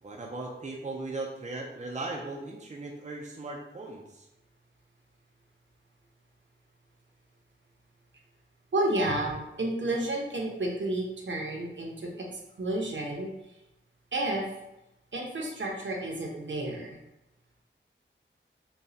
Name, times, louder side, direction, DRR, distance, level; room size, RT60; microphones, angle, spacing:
voice 1, 0.0-4.3, right 2 dB, 35° right, 0 dB, 0.5 m, -38 dB
voice 2, 8.7-12.3 12.6-13.3 14.1-14.5 15.1-17.0, right 1 dB, 65° right, 0 dB, 0.8 m, -31 dB
6.9 x 2.3 x 2.8 m, 0.90 s
wide cardioid pair, 85°, 21 cm